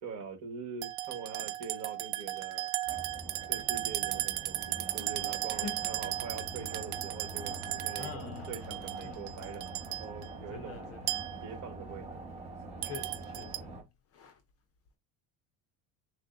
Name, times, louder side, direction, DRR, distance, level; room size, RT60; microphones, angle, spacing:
voice 1, 0.0-2.7 3.5-10.9 11.4-12.2, right 5 dB, 45° right, 1.5 m, -44 dB
sound 1, 0.8-10.3 11.1-11.6 12.8-13.6, right 16 dB, 65° right, 0.5 m, -36 dB
sound 2, 2.9-13.8, right 2 dB, 15° right, 1.2 m, -45 dB
voice 2, 5.5-6.1 8.0-9.2 10.5-11.4 12.8-14.4, left 6 dB, 35° left, 0.7 m, -46 dB
6.4 x 2.2 x 2.5 m
cardioid pair, 145°, 42 cm